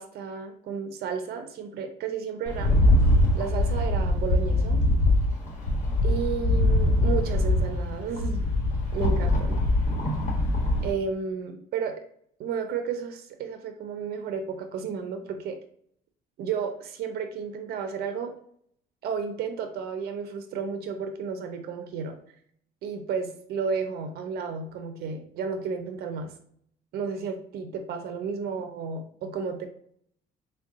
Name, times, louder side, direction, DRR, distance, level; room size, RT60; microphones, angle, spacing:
voice 1, 0.0-2.7 3.3-4.8 6.0-8.5 8.9-9.6 10.8-11.9 12.4-15.6 16.4-18.3 19.0-22.2 22.8-26.3 26.9-29.7, right 6 dB, 70° right, 6 dB, 0.6 m, -32 dB
Rattle, 2.5-10.9, left 1 dB, 45° left, 1.3 m, -23 dB
3.6 x 2.3 x 3.5 m, 0.63 s
cardioid pair, 110°, 17 cm